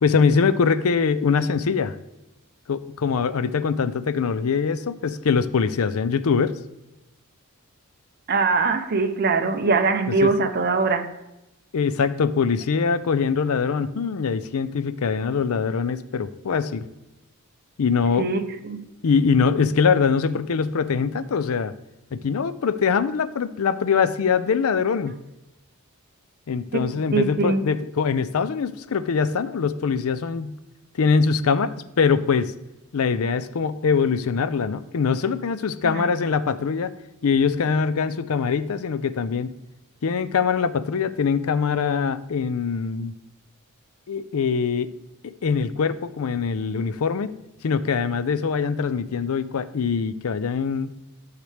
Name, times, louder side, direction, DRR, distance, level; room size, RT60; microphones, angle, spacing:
voice 1, 0.0-2.0 2.7-6.6 10.2-10.3 11.7-16.9 17.8-18.3 19.0-21.7 22.1-25.2 26.5-30.6 31.0-32.5 32.9-36.9 37.2-39.5 40.0-43.1 44.1-44.9 45.4-47.3 47.6-50.9, left 5 dB, 70° left, 13 dB, 0.5 m, -23 dB
voice 2, 8.3-11.1 18.2-18.8 26.7-27.6 35.9-36.0, right 4 dB, 45° right, 6 dB, 0.7 m, -22 dB
12.0 x 6.6 x 3.3 m, 0.93 s
head